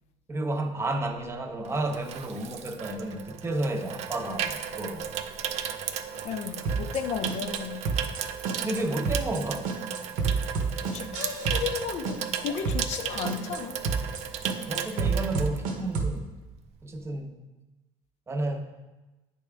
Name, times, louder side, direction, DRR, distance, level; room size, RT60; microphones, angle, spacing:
voice 1, 0.3-5.1 8.6-9.7 14.6-16.4 16.8-17.4 18.3-18.6, right 2 dB, 20° right, 0.7 m, -31 dB
Water tap faucet / Sink (filling or washing), 1.1-16.2 16.5-16.8, right 8 dB, 55° right, 0.4 m, -35 dB
voice 2, 6.1-7.9 10.9-13.8 17.1-17.2, left 8 dB, 55° left, 0.5 m, -34 dB
sound 1, 6.7-7.0 7.3-7.6 7.9-8.2 8.5-8.8 9.1-9.4 9.7-11.8 12.1-12.4 12.7-13.0 13.3-13.6 13.9-14.2 14.5-16.2, right 5 dB, 75° right, 0.9 m, -29 dB
9.2 x 3.5 x 3.4 m
cardioid pair, 120°, 13 cm